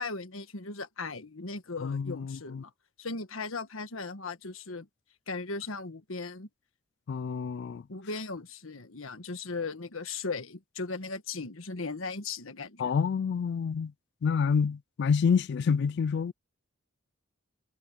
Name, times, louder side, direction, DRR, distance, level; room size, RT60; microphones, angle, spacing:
voice 1, 0.0-2.7 3.0-4.9 5.3-6.5 7.9-12.9, left 3 dB, 75° left, 1.5 m, -37 dB
voice 2, 1.8-2.6 7.1-7.8 12.8-13.9 14.2-16.3, left 6 dB, 55° left, 0.3 m, -28 dB
head